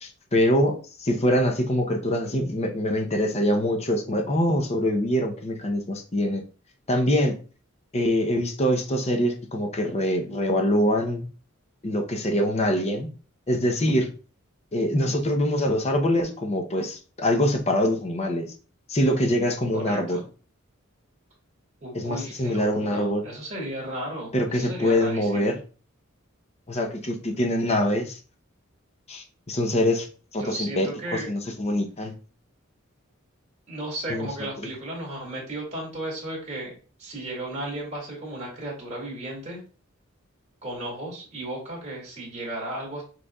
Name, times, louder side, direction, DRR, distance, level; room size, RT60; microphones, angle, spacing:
voice 1, 0.0-6.4 6.9-7.4 7.9-11.3 11.8-13.1 13.5-14.1 14.7-18.5 18.9-20.2 21.9-23.2 24.3-25.6 26.7-28.2 29.1-30.1 30.3-32.1 34.1-34.3, left 1 dB, 30° left, 4 dB, 0.7 m, -24 dB
voice 2, 19.7-20.2 21.8-25.5 30.4-31.3 33.7-36.7 37.0-39.6 40.6-43.0, right 1 dB, 35° right, -4 dB, 2.2 m, -34 dB
6.3 x 3.3 x 2.3 m, 0.37 s
head